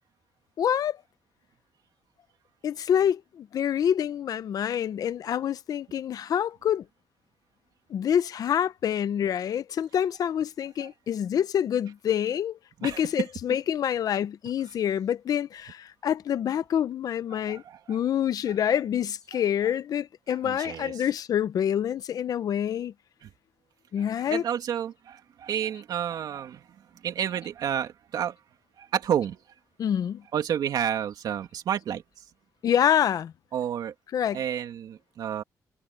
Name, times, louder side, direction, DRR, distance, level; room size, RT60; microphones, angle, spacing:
voice 1, 0.6-1.0 2.6-6.8 7.9-17.6 17.9-22.9 23.9-24.4 29.8-30.2 32.6-33.3 34.1-34.4, left 9 dB, 65° left, 0.8 m, -27 dB
voice 2, 17.3-18.0 20.4-20.9 23.2-23.3 24.3-26.6 27.0-28.3 28.8-29.4 30.3-32.0 33.5-33.9 34.3-35.4, right 9 dB, 75° right, 2.7 m, -30 dB
cardioid pair, 120°, 7 cm